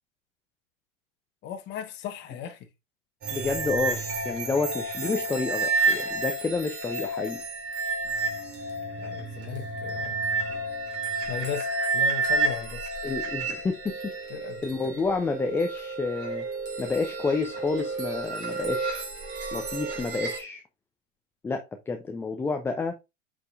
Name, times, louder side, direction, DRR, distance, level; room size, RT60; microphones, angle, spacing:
voice 1, 1.4-2.7 9.0-10.2 11.3-12.9 14.3-15.0, left 8 dB, 30° left, 1.2 m, -37 dB
sound 1, 3.2-20.4, right 3 dB, 30° right, 2.9 m, -30 dB
voice 2, 3.3-7.4 13.0-14.1 14.6-16.5 16.8-19.0 19.5-20.6 21.4-23.0, left 4 dB, 5° left, 0.4 m, -29 dB
8.0 x 5.1 x 2.4 m
figure-of-eight pair, 100°, 37 cm